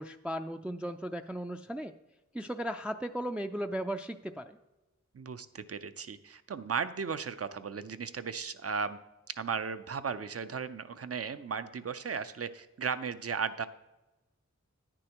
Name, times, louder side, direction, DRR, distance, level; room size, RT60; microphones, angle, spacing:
voice 1, 0.0-1.9 2.3-4.6, equal, 5° right, 6 dB, 0.3 m, -36 dB
voice 2, 5.1-9.0 9.4-13.7, right 6 dB, 55° right, 13 dB, 0.5 m, -36 dB
9.8 x 9.8 x 3.0 m, 1.0 s
wide cardioid pair, 50°, 29 cm